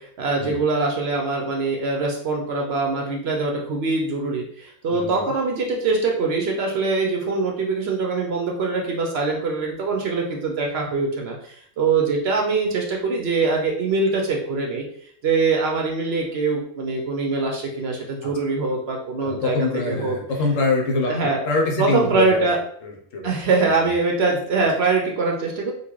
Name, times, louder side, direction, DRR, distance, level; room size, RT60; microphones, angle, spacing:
voice 1, 0.0-14.8 15.2-20.2 21.0-21.4 21.8-22.6 23.2-25.7, right 3 dB, 60° right, 1 dB, 0.7 m, -23 dB
voice 2, 19.2-22.5 22.8-23.3, left 3 dB, 75° left, 1 dB, 1.1 m, -24 dB
3.8 x 2.4 x 3.0 m, 0.64 s
omnidirectional pair, 1.4 m